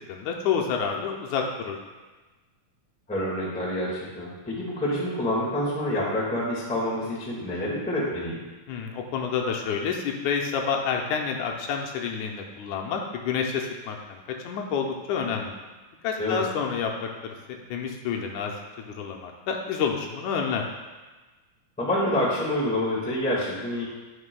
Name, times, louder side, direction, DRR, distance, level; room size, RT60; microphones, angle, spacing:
voice 1, 0.1-1.8 8.7-14.2 14.4-15.6 16.0-18.5 19.0-20.6, left 6 dB, 85° left, 1 dB, 2.1 m, -29 dB
voice 2, 3.1-8.4 16.2-16.4 21.8-23.8, left 1 dB, 5° left, -6 dB, 0.6 m, -27 dB
9.7 x 5.4 x 2.2 m, 1.2 s
omnidirectional pair, 3.4 m